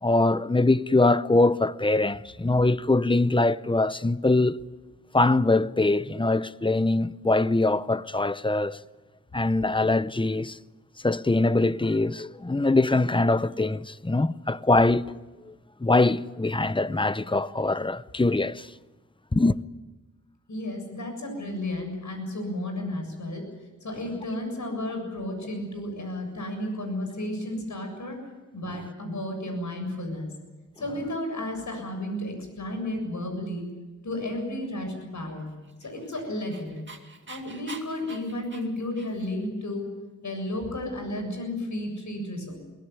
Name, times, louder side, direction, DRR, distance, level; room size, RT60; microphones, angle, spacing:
voice 1, 0.0-4.6 5.1-8.8 9.3-10.6 11.0-15.1 15.5-15.6 15.8-18.7 19.3-19.6, left 2 dB, 15° left, 0.7 m, -23 dB
voice 2, 20.5-23.4 23.8-28.2 28.5-30.3 30.8-33.6 34.0-35.5 35.8-36.7 37.3-39.9 40.2-42.6, left 1 dB, 75° left, 7.5 m, -33 dB
Dog, 35.6-39.5, right 4 dB, 40° right, 2.4 m, -46 dB
23.0 x 17.0 x 9.6 m
wide cardioid pair, 70°, 30 cm